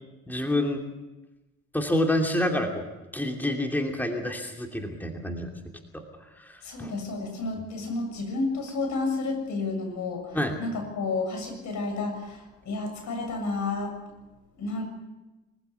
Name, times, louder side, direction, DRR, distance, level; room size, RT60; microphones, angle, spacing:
voice 1, 0.3-0.8 1.7-5.5 5.9-6.0 6.4-6.9 10.3-10.6, left 1 dB, 5° left, 2 dB, 2.8 m, -28 dB
voice 2, 6.6-13.9 14.6-14.9, left 3 dB, 70° left, 5 dB, 7.0 m, -31 dB
24.0 x 15.5 x 8.3 m, 1.1 s
cardioid pair, 90°, 30 cm